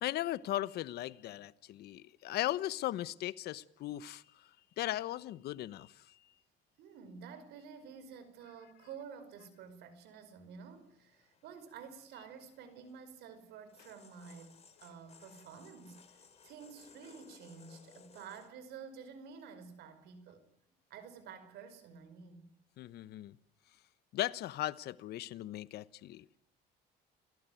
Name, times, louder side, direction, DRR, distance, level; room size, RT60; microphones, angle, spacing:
voice 1, 0.0-4.2 4.8-5.9 22.8-23.4 24.1-26.2, left 14 dB, 75° left, 1.1 m, -37 dB
voice 2, 6.8-16.0 16.4-20.5 20.9-22.5, right 6 dB, 80° right, 5.3 m, -51 dB
sound 1, 10.6-18.5, left 5 dB, 40° left, 3.4 m, -62 dB
29.0 x 18.0 x 9.3 m
cardioid pair, 110°, 17 cm